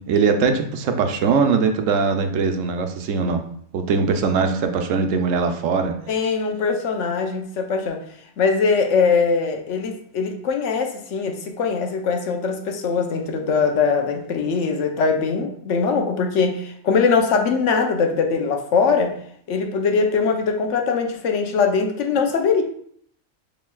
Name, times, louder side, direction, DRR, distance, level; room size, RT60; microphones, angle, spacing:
voice 1, 0.0-3.4 3.7-5.9, right 5 dB, 85° right, 6 dB, 1.0 m, -21 dB
voice 2, 6.1-8.0 8.4-19.1 19.5-22.6, left 5 dB, 75° left, 4 dB, 1.0 m, -21 dB
6.7 x 3.1 x 2.3 m, 0.64 s
omnidirectional pair, 1.3 m